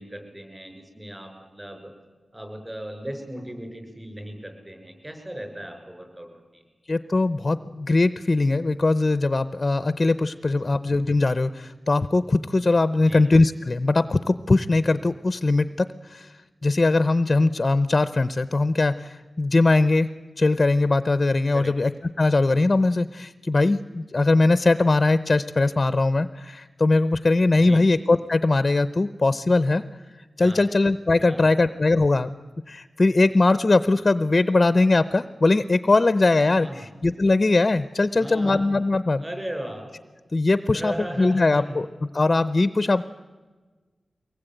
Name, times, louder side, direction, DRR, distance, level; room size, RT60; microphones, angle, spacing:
voice 1, 0.0-1.9 2.3-6.6 13.0-13.2 21.5-21.7 27.6-27.8 30.4-30.6 31.2-31.5 36.6-36.9 38.1-38.6 39.2-40.0 40.7-41.8, right 1 dB, 20° right, 5 dB, 6.2 m, -37 dB
voice 2, 6.9-20.1 20.4-21.9 22.2-29.8 30.2-32.3 32.7-39.2 40.3-41.9 42.1-43.1, left 2 dB, 35° left, 13 dB, 0.6 m, -21 dB
23.5 x 19.5 x 9.1 m, 1.3 s
wide cardioid pair, 125°, 0 cm